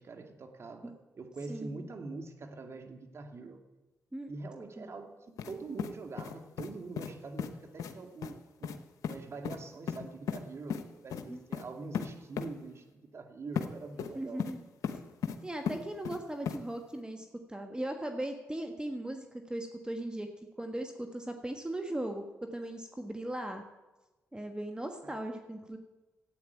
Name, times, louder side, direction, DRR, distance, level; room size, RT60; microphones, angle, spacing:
voice 1, 0.0-3.6 4.3-5.2 5.5-14.5 25.0-25.1, right 3 dB, 50° right, 6 dB, 2.1 m, -44 dB
voice 2, 1.5-1.8 4.1-4.3 4.8-4.9 11.3-11.4 14.1-14.6 15.4-20.3 20.6-22.2 22.5-23.6 24.3-25.8, right 1 dB, 15° right, 5 dB, 1.4 m, -38 dB
sound 1, 5.4-5.5 5.8-6.7 7.0-7.1 7.4-7.5 7.8-7.9 8.2-8.3 8.6-8.8 9.0-9.2 9.4-9.6 9.9-10.4 10.7-10.8 11.1-11.2 11.5-11.6 11.9-12.1 12.4-12.5 13.6-13.7 14.0-14.5 14.8-15.4 15.7-16.2 16.5-16.6, left 7 dB, 80° left, 1.0 m, -35 dB
13.0 x 8.5 x 9.1 m, 1.1 s
supercardioid pair, 55°, 6 cm